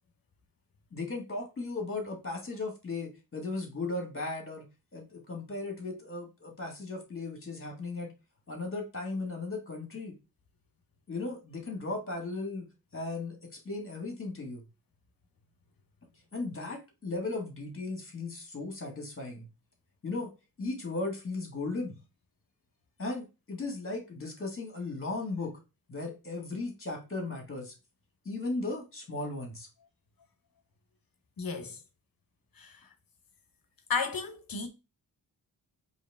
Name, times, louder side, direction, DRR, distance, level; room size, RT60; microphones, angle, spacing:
voice 1, 0.9-8.1 8.5-10.2 11.1-14.7 16.3-19.5 20.0-20.3 20.6-22.0 23.0-25.6 25.9-27.7 28.3-29.7, left 3 dB, 30° left, 2.0 m, -36 dB
voice 2, 31.4-31.8 32.6-32.9 33.9-34.7, left 5 dB, 55° left, 1.0 m, -33 dB
4.7 x 3.0 x 3.5 m
wide cardioid pair, 80°, 41 cm